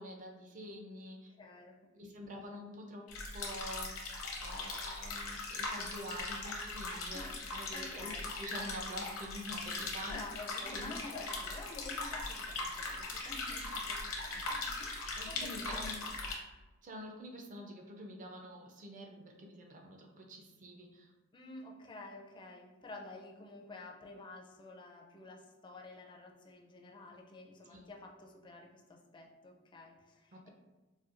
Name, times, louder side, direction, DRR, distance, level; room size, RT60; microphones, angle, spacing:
voice 1, 0.0-1.3 2.0-3.1 3.3-7.2 7.5-10.2 10.6-10.9 15.2-16.0 16.8-21.1 27.7-27.9 30.3-30.5, equal, 40° right, 2 dB, 0.5 m, -47 dB
voice 2, 1.4-2.3 7.1-7.4 7.7-8.3 10.1-16.3 21.3-30.5, left 2 dB, 25° left, 1 dB, 0.4 m, -50 dB
sound 1, 3.1-16.3, left 3 dB, 70° left, 0.7 m, -40 dB
4.2 x 2.2 x 2.5 m, 1.1 s
head